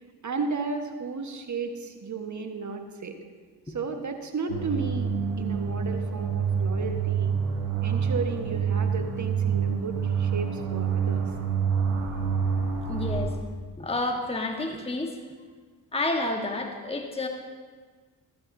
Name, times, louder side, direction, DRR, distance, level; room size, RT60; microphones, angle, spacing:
voice 1, 0.2-3.2 3.7-7.4 7.8-11.2, right 4 dB, 35° right, 5 dB, 1.5 m, -33 dB
sound 1, 4.5-13.3, right 6 dB, 85° right, 1.3 m, -27 dB
voice 2, 12.9-13.3 13.8-15.2 15.9-17.3, left 2 dB, 10° left, 3 dB, 1.4 m, -30 dB
14.5 x 12.5 x 2.8 m, 1.5 s
hypercardioid pair, 45°, 48 cm